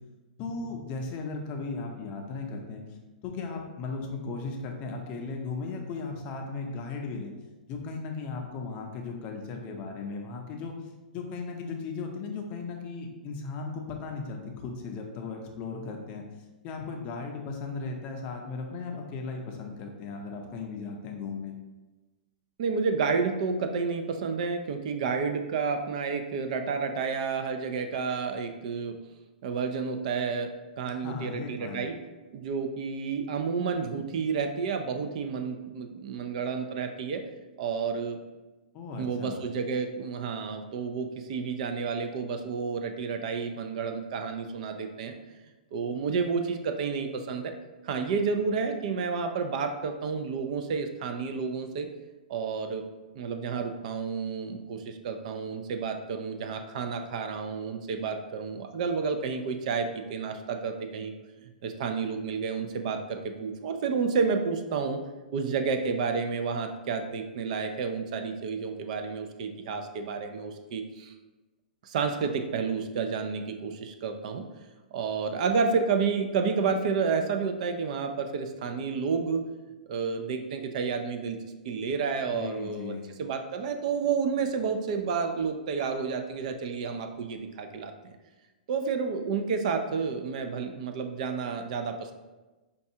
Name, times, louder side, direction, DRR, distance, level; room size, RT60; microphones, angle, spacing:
voice 1, 0.4-2.8 3.2-7.3 7.7-10.7 11.1-16.3 16.6-21.6 30.9-31.8 38.7-39.4 82.3-83.0, left 4 dB, 30° left, 2 dB, 0.5 m, -36 dB
voice 2, 22.6-29.0 29.4-30.5 30.8-32.0 32.3-37.2 37.6-38.2 39.0-45.2 45.7-47.5 47.8-51.9 52.3-52.8 53.2-61.1 61.4-65.0 65.3-71.1 71.8-74.4 74.9-79.5 79.9-81.4 81.6-82.9 83.2-88.2 88.7-92.1, right 5 dB, 50° right, 6 dB, 0.4 m, -30 dB
5.2 x 2.3 x 2.7 m, 1.2 s
hypercardioid pair, 150°, 5 cm